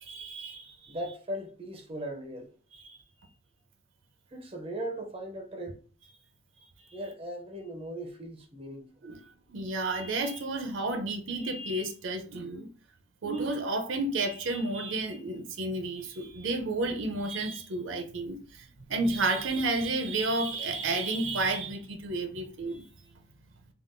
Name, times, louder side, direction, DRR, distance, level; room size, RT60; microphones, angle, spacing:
voice 1, 0.0-1.0 2.7-3.0 6.6-6.7 9.0-12.7 13.2-22.9, right 2 dB, 70° right, 0.6 m, -31 dB
voice 2, 0.9-2.5 4.3-5.8 6.9-8.9, right 1 dB, 25° right, 0.5 m, -38 dB
3.5 x 2.3 x 2.5 m
head